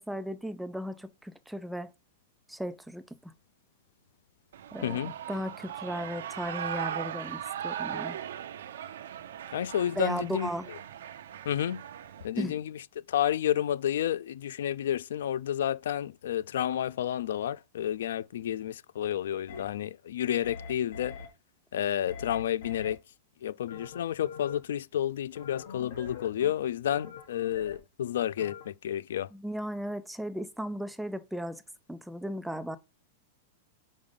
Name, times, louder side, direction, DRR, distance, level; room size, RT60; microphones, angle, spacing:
voice 1, 0.0-1.9 2.5-3.3 4.7-8.2 10.0-10.7 12.4-12.6 29.3-31.6 31.9-32.8, equal, ahead, 0.3 m, -36 dB
Shout / Cheering, 4.5-12.3, right 10 dB, 70° right, 0.7 m, -39 dB
voice 2, 4.8-5.1 9.5-10.5 11.5-11.8 12.2-21.2 21.7-23.0 23.4-29.3, left 10 dB, 75° left, 0.3 m, -30 dB
sound 1, 19.5-19.6 20.4-21.3 22.1-22.9 23.7-24.6 25.4-26.5 26.9-27.8 28.4-28.7, left 5 dB, 55° left, 1.8 m, -43 dB
5.3 x 4.8 x 5.2 m
supercardioid pair, 175°, 0 cm